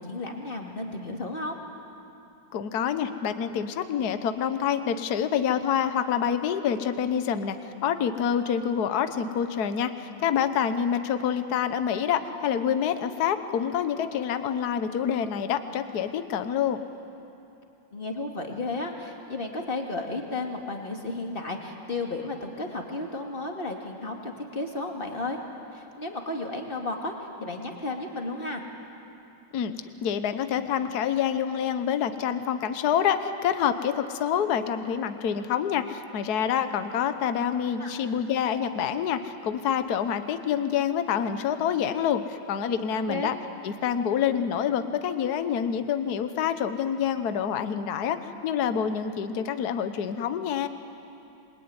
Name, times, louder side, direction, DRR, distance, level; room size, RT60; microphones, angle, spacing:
voice 1, 0.0-1.6 17.9-25.4 25.7-27.1 27.4-28.6 37.8-37.9 43.1-43.3, left 2 dB, 25° left, 2 dB, 2.6 m, -33 dB
voice 2, 2.5-7.6 7.8-16.8 29.5-29.7 30.0-43.4 43.6-50.7, left 8 dB, 60° left, 10 dB, 1.5 m, -27 dB
27.5 x 22.0 x 9.7 m, 2.8 s
omnidirectional pair, 2.1 m